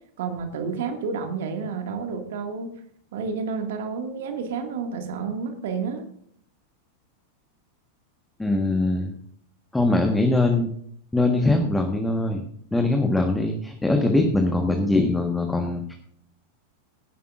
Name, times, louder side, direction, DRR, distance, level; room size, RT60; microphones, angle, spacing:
voice 1, 0.2-2.7 3.1-6.0, right 5 dB, 55° right, 5 dB, 2.1 m, -30 dB
voice 2, 8.4-9.1 9.7-10.7 11.1-12.4 12.7-15.9, left 2 dB, 5° left, 3 dB, 1.4 m, -22 dB
17.0 x 11.0 x 2.5 m, 0.66 s
figure-of-eight pair, 90°, 0 cm